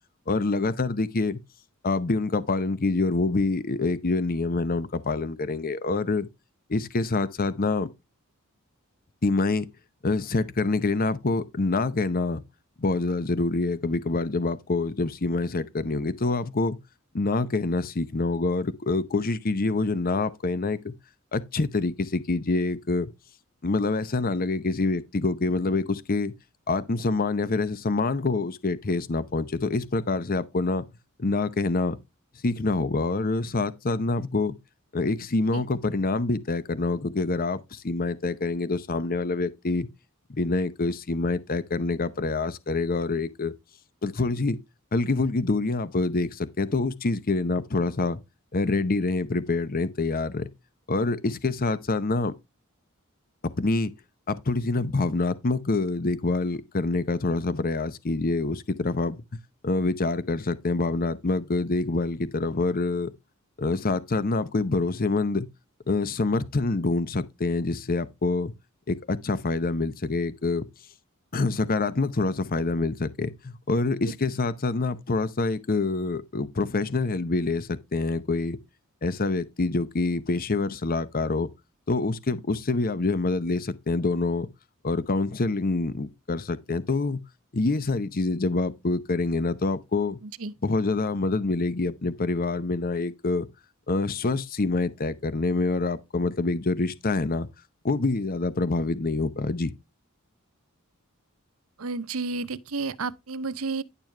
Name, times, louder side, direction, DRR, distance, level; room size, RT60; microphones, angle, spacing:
voice 1, 0.3-1.4 1.8-6.3 6.7-7.9 9.2-9.7 10.0-12.4 12.8-16.8 17.1-20.9 21.3-23.1 23.6-26.3 26.7-30.9 31.2-32.0 32.4-34.6 34.9-39.9 40.3-43.5 44.0-44.6 44.9-48.2 48.5-50.5 50.9-52.3 53.6-53.9 54.3-59.2 59.6-63.1 63.6-65.5 65.9-68.5 68.9-70.7 71.3-78.6 79.0-81.5 81.9-84.5 84.8-87.2 87.5-90.2 90.6-93.5 93.9-97.5 97.8-99.7, left 3 dB, 40° left, 0.8 m, -26 dB
voice 2, 90.2-90.5 101.8-103.8, right 3 dB, 70° right, 0.7 m, -31 dB
10.5 x 6.9 x 3.3 m
head